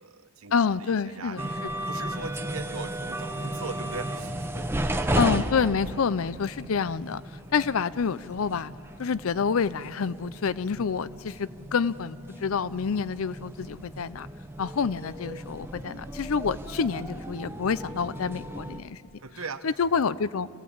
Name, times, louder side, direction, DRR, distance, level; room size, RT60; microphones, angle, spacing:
voice 1, 0.0-1.6 1.9-5.2 19.2-19.7, right 4 dB, 90° right, 9 dB, 1.1 m, -40 dB
voice 2, 0.5-1.4 5.1-7.2 7.5-8.7 9.0-14.3 14.6-19.0 19.6-20.5, left 5 dB, 75° left, 17 dB, 0.5 m, -27 dB
sound 1, 1.4-18.8, right 1 dB, 10° right, 0.9 m, -35 dB
26.5 x 17.0 x 8.7 m, 2.6 s
head